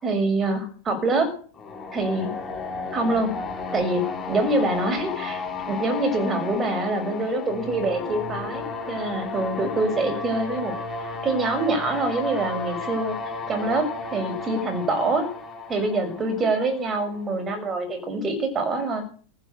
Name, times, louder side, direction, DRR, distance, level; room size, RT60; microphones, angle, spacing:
voice 1, 0.0-1.3 1.9-2.3 2.9-3.3 3.7-5.4 5.7-10.7 11.2-13.2 13.5-15.3 15.7-19.0, right 2 dB, 25° right, 7 dB, 6.4 m, -25 dB
sound 1, 1.6-17.4, left 3 dB, 20° left, 5.3 m, -33 dB
16.0 x 8.3 x 8.3 m, 0.43 s
figure-of-eight pair, 90°, 0 cm